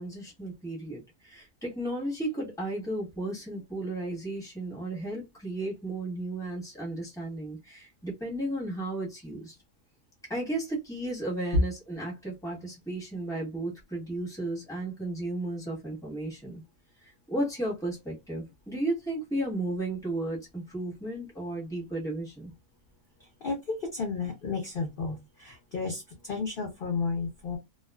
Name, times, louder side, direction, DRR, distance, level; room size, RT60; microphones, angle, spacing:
voice 1, 0.0-9.5 10.3-16.6 17.0-22.5, right 1 dB, 5° left, 1.0 m, -34 dB
voice 2, 23.4-27.6, left 4 dB, 50° left, 0.7 m, -33 dB
2.3 x 2.3 x 2.2 m
omnidirectional pair, 1.5 m